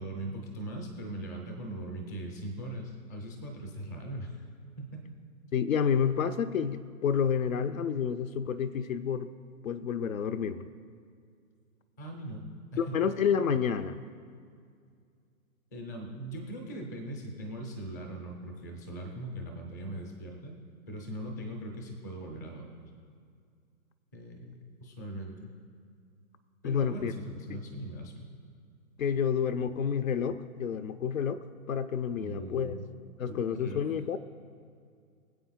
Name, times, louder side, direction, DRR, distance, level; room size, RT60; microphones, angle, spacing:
voice 1, 0.0-4.4 4.8-5.1 12.0-13.1 15.7-20.6 20.9-22.8 24.1-24.5 24.8-25.5 26.6-28.3 32.2-32.8 33.3-33.9, right 1 dB, 15° left, 2 dB, 0.6 m, -40 dB
voice 2, 5.5-9.3 9.6-10.7 12.8-14.0 26.6-27.1 27.5-27.6 29.0-32.8 33.2-34.2, left 7 dB, 65° left, 11 dB, 0.7 m, -29 dB
24.0 x 8.1 x 2.3 m, 2.2 s
hypercardioid pair, 165°, 43 cm